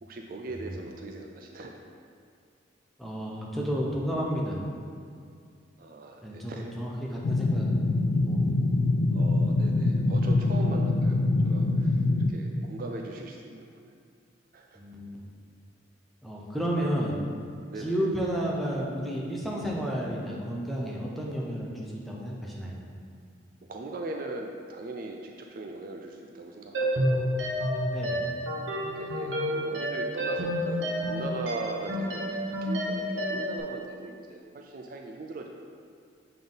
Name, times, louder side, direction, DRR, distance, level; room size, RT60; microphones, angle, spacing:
voice 1, 0.0-1.7 5.8-6.7 9.1-11.2 11.4-12.0 12.3-13.9 14.5-14.8 17.7-18.1 23.7-27.3 28.9-35.5, right 2 dB, 45° right, 2 dB, 0.4 m, -39 dB
voice 2, 3.0-4.6 6.2-7.7 8.1-8.5 9.8-10.2 14.7-15.2 16.2-17.2 17.8-22.8 27.9-28.3, equal, ahead, -4 dB, 0.7 m, -32 dB
sound 1, 7.2-12.3, left 2 dB, 50° left, 0.3 m, -24 dB
sound 2, 26.7-33.6, equal, 70° right, 0.9 m, -29 dB
6.8 x 3.7 x 3.9 m, 2.3 s
head